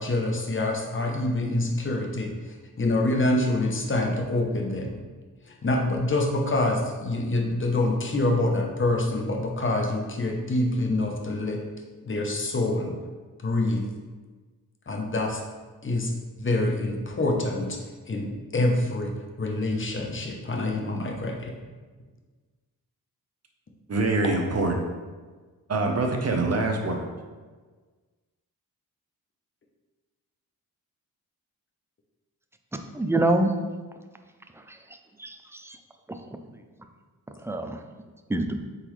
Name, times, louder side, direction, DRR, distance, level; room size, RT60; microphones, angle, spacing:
voice 1, 0.0-2.3 2.8-5.0 5.6-11.6 12.1-12.9 13.4-13.8 14.9-15.4 15.8-16.1 16.4-17.8 18.1-21.5, left 2 dB, 30° left, 2 dB, 0.7 m, -26 dB
voice 2, 23.9-24.8 25.7-27.1, right 2 dB, 40° right, 3 dB, 0.7 m, -24 dB
voice 3, 32.9-33.5 34.7-34.8 35.2-35.8 37.4-37.8 38.3-38.6, right 1 dB, 5° right, 5 dB, 0.3 m, -25 dB
3.9 x 3.9 x 3.1 m, 1.4 s
cardioid pair, 65°, 39 cm